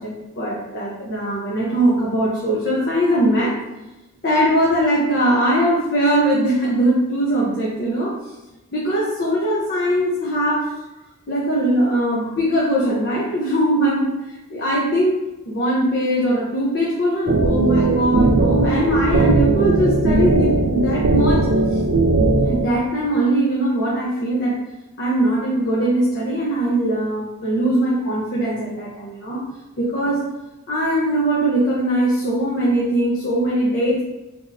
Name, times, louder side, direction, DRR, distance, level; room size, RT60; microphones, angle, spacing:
voice 1, 0.0-3.6 4.2-8.2 8.7-10.7 11.3-15.2 15.4-21.4 22.4-24.6 25.0-29.4 29.8-30.2 30.7-34.0, right 1 dB, 50° left, -6 dB, 0.8 m, -20 dB
sound 1, 17.3-22.7, right 2 dB, 70° right, 0.5 m, -18 dB
3.8 x 2.7 x 4.0 m, 1.0 s
head